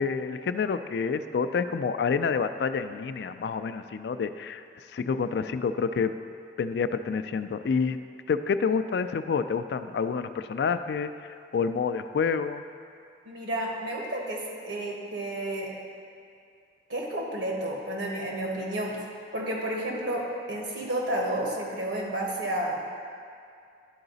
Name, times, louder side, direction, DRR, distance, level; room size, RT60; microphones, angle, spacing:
voice 1, 0.0-4.6 4.9-6.1 6.6-8.0 8.3-11.1 11.5-12.6, left 5 dB, 70° left, 11 dB, 0.3 m, -28 dB
voice 2, 13.2-15.7 16.9-19.0 19.3-22.9, right 1 dB, 90° right, -2 dB, 1.4 m, -31 dB
11.0 x 4.8 x 3.9 m, 2.4 s
head